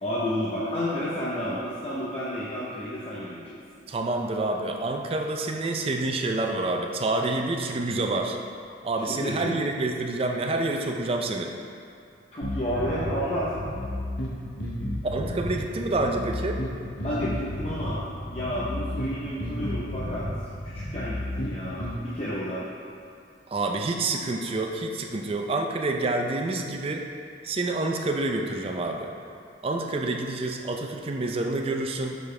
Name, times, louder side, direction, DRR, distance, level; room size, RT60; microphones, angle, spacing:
voice 1, 0.0-3.6 9.1-9.8 12.3-13.5 17.0-18.0 18.3-20.3 20.7-22.6, equal, 35° left, -8 dB, 0.7 m, -31 dB
voice 2, 3.9-8.4 8.8-11.5 15.1-16.6 23.5-27.0 27.4-29.1 29.6-32.2, right 2 dB, 30° right, 2 dB, 0.4 m, -28 dB
sound 1, 12.4-22.0, left 1 dB, 65° left, 1.0 m, -33 dB
6.9 x 5.1 x 3.3 m, 2.4 s
head